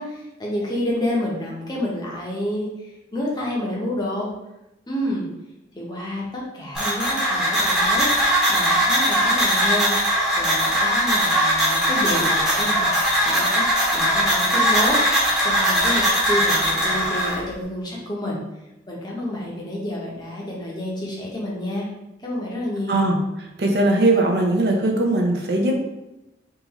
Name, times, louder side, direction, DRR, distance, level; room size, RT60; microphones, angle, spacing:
voice 1, 0.0-4.3 4.9-5.3 5.7-13.6 13.9-18.4 18.9-21.9 22.2-23.0, left 1 dB, 20° left, -3 dB, 0.8 m, -29 dB
sound 1, 6.7-17.4, equal, 5° right, 0.9 m, -20 dB
voice 2, 23.6-25.8, right 2 dB, 60° right, 1 dB, 0.6 m, -19 dB
3.7 x 2.5 x 3.0 m, 0.93 s
head